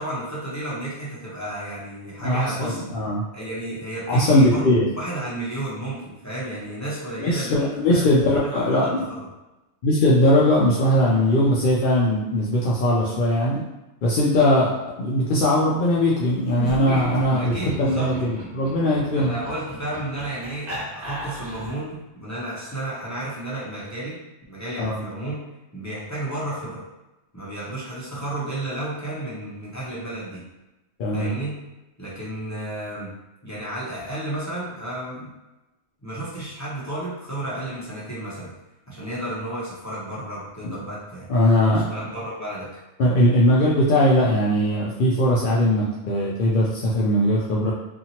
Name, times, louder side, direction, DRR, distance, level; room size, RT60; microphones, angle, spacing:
voice 1, 0.0-2.8 3.3-9.3 14.4-14.6 17.4-18.1 19.2-24.2 24.5-25.4 25.7-26.8 27.3-30.4 31.1-31.6 32.0-33.1 33.4-35.3 36.0-38.5 38.9-41.3 41.9-42.7, right 1 dB, 15° left, -9 dB, 0.7 m, -32 dB
voice 2, 2.2-3.2 4.1-4.8 7.2-9.0 9.8-13.6 14.0-14.7 15.0-19.3 24.8-25.0 31.0-31.3 40.6-40.7 41.3-41.9 43.0-47.7, left 1 dB, 60° left, -5 dB, 0.5 m, -20 dB
Laughter, 16.5-21.9, left 1 dB, 50° right, 1.0 m, -35 dB
2.8 x 2.5 x 2.7 m, 1.0 s
omnidirectional pair, 1.3 m